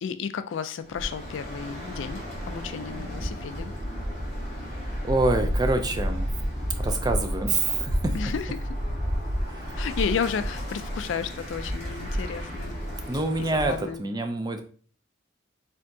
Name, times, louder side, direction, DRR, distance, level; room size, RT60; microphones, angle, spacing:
voice 1, 0.0-3.7 8.1-8.7 9.8-12.7 13.4-14.0, left 6 dB, 60° left, 0.3 m, -32 dB
Bird, 0.8-13.9, equal, 35° left, 1.5 m, -31 dB
voice 2, 5.0-6.3 6.8-8.2 9.5-9.9 13.1-14.6, right 2 dB, 20° right, 0.4 m, -26 dB
4.4 x 3.6 x 2.7 m
head